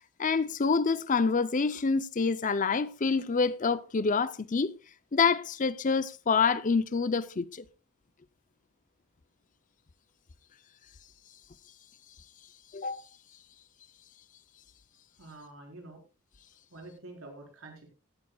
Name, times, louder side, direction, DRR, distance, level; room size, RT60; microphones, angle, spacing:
voice 1, 0.2-4.7 5.1-7.6 12.7-13.0, left 5 dB, 35° left, 0.5 m, -27 dB
voice 2, 15.2-16.0 16.7-17.9, right 2 dB, 65° right, 4.3 m, -47 dB
15.5 x 12.5 x 2.3 m
head